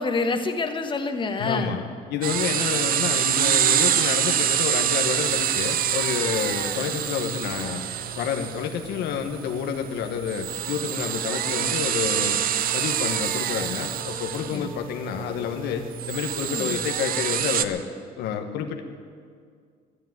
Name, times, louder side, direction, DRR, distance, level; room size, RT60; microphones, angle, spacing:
voice 1, 0.0-1.8 14.5-14.7 16.5-16.8, left 3 dB, 30° left, 6 dB, 1.3 m, -27 dB
voice 2, 1.4-7.8 8.2-12.4 12.7-17.8 18.2-18.8, left 7 dB, 80° left, 4 dB, 1.2 m, -29 dB
sound 1, 2.2-17.6, right 10 dB, 60° right, 0.7 m, -26 dB
sound 2, 5.0-8.7 10.3-17.6, right 1 dB, 10° right, 1.3 m, -45 dB
13.5 x 10.0 x 9.3 m, 2.1 s
cardioid pair, 110°, 17 cm